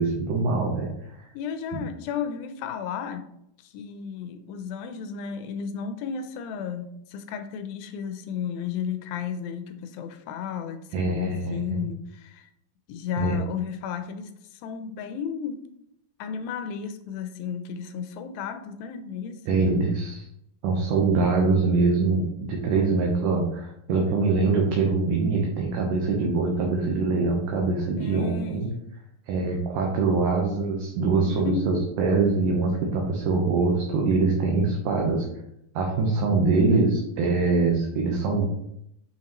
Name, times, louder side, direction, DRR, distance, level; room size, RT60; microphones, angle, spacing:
voice 1, 0.0-1.3 1.7-1.8 10.9-11.8 13.2-13.3 19.5-20.3 20.6-28.7 29.3-35.3 35.7-38.5, right 3 dB, 70° right, 0 dB, 2.3 m, -24 dB
voice 2, 1.3-3.3 3.6-12.5 12.9-15.6 16.2-19.5 28.0-28.6 31.2-31.8, left 7 dB, 90° left, 8 dB, 2.3 m, -33 dB
7.0 x 5.7 x 3.0 m, 0.78 s
omnidirectional pair, 4.1 m